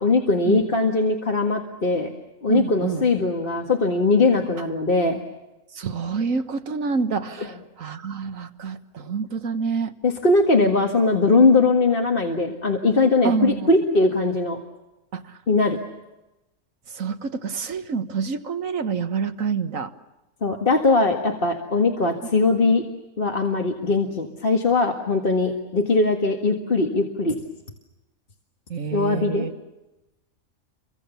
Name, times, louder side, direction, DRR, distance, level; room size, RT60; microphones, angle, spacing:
voice 1, 0.0-2.1 2.4-5.2 10.0-14.6 15.5-15.8 20.4-22.8 23.2-27.4 28.9-29.5, left 3 dB, 45° left, 2 dB, 2.0 m, -20 dB
voice 2, 2.5-3.0 5.8-9.9 13.2-13.7 15.1-15.4 16.9-19.9 28.7-29.5, right 5 dB, 85° right, 9 dB, 1.8 m, -27 dB
30.0 x 24.5 x 7.1 m, 1.0 s
omnidirectional pair, 1.4 m